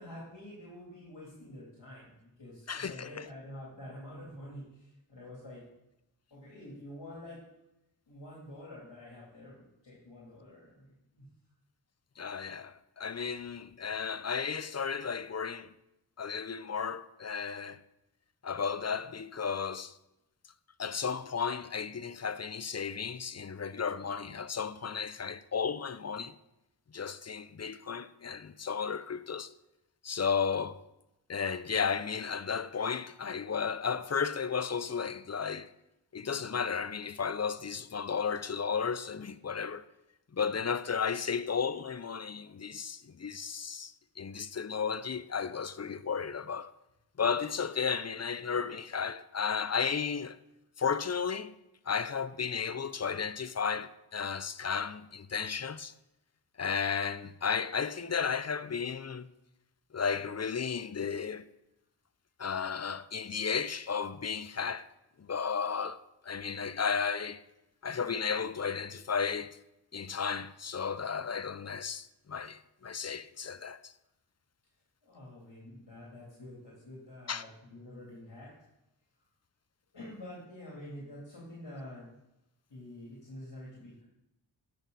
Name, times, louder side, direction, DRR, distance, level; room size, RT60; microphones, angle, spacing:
voice 1, 0.0-5.6 6.3-7.4 8.1-11.3 75.0-78.5 79.9-82.1 82.7-84.0, left 1 dB, 60° left, 3.3 m, -47 dB
voice 2, 2.7-3.1 12.2-15.7 16.2-17.8 18.4-19.9 20.8-26.3 26.9-29.5 30.0-30.8 31.3-35.7 36.1-39.8 40.3-46.7 47.2-50.4 50.8-51.5 51.9-55.9 56.6-59.3 59.9-61.5 62.4-64.9 65.2-66.0 66.2-67.4 67.8-69.6 69.9-73.9 77.3-77.4, left 6 dB, 35° left, 0.6 m, -34 dB
12.0 x 6.4 x 4.1 m
cardioid pair, 40°, 48 cm